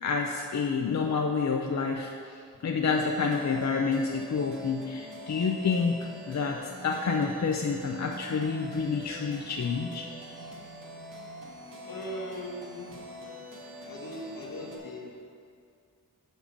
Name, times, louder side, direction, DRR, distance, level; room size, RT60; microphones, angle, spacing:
voice 1, 0.0-10.1, left 5 dB, 55° left, 2 dB, 0.6 m, -29 dB
sound 1, 2.9-14.8, equal, 65° right, 1.6 m, -44 dB
voice 2, 11.9-13.0 13.8-15.3, equal, 80° left, -2 dB, 1.5 m, -39 dB
7.3 x 5.4 x 7.1 m, 2.3 s
wide cardioid pair, 100°, 34 cm